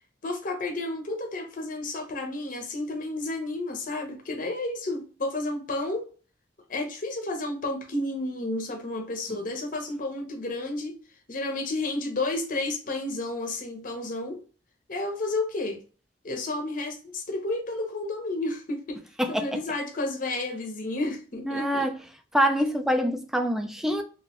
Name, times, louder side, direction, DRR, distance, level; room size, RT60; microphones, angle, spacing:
voice 1, 0.2-6.1 6.7-11.0 11.3-14.4 14.9-15.8 16.2-19.0 19.3-21.8, left 2 dB, 50° left, 0.8 m, -31 dB
voice 2, 21.4-21.9 22.3-24.0, equal, ahead, 0.4 m, -25 dB
3.0 x 2.6 x 2.9 m
head